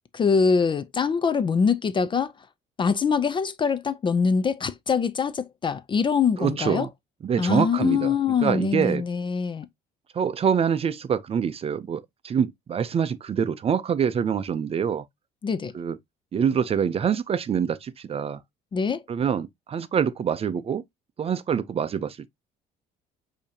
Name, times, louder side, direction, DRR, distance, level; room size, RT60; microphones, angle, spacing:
voice 1, 0.1-2.3 2.8-6.9 7.4-9.7 15.4-15.7 18.7-19.0, left 6 dB, 30° left, 0.4 m, -24 dB
voice 2, 6.4-6.9 7.2-8.1 8.4-9.0 10.1-15.0 15.7-16.0 16.3-18.4 19.1-20.8 21.2-22.3, right 7 dB, 35° right, 0.5 m, -25 dB
6.5 x 2.8 x 2.8 m
cardioid pair, 110°, 17 cm